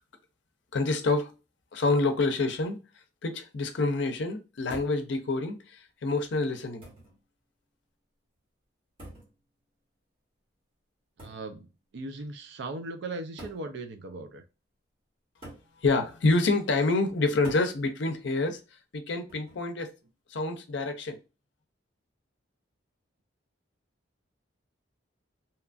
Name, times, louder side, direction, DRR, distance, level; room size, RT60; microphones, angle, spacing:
voice 1, 0.7-1.3 1.7-2.8 3.2-5.6 6.0-6.8 15.8-18.6 18.9-19.9 20.3-21.2, left 3 dB, 65° left, 0.5 m, -27 dB
sound 1, 4.7-5.1 6.1-6.2 6.8-7.2 9.0-9.3 11.2-11.5 12.5-12.6 13.4-13.7 15.4-15.7 17.4-17.7 19.3-19.7, right 1 dB, 30° right, 1.3 m, -45 dB
voice 2, 11.2-11.7 11.9-14.4, right 2 dB, 65° right, 0.4 m, -38 dB
2.8 x 2.3 x 2.4 m
head